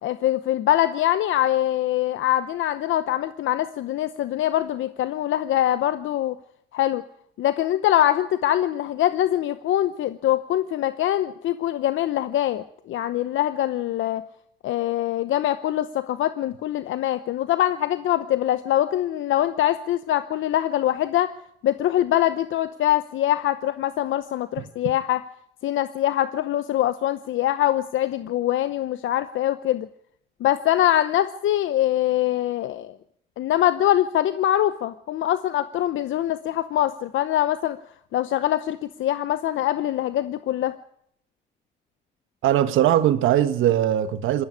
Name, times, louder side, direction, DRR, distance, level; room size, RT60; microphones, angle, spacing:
voice 1, 0.0-6.4 6.7-7.0 7.4-14.2 14.6-21.3 21.6-25.2 25.6-29.9 30.4-32.9 33.4-37.8 38.1-40.7, left 12 dB, 75° left, 0.8 m, -23 dB
voice 2, 42.4-44.4, right 11 dB, 85° right, 1.3 m, -20 dB
19.5 x 15.5 x 9.5 m
cardioid pair, 90°, 20 cm